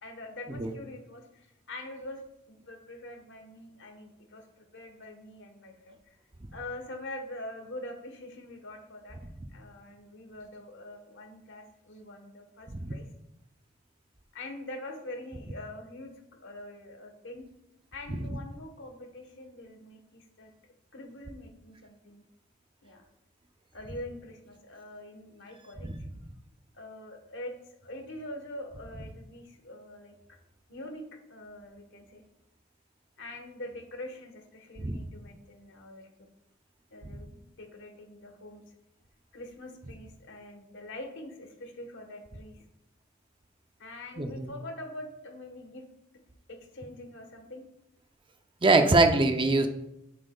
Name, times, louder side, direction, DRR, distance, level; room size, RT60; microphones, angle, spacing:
voice 1, 0.0-6.1 6.5-13.1 14.3-16.1 16.4-17.5 17.9-20.5 20.9-22.2 22.8-23.1 23.7-25.9 26.7-30.1 30.7-31.0 31.3-32.2 33.2-36.1 36.9-38.7 39.3-42.6 43.8-45.8 46.5-47.6, left 1 dB, 60° left, 5 dB, 1.3 m, -44 dB
voice 2, 44.2-44.5 48.6-49.7, right 2 dB, 25° right, 6 dB, 0.6 m, -24 dB
11.5 x 7.4 x 2.4 m, 0.88 s
head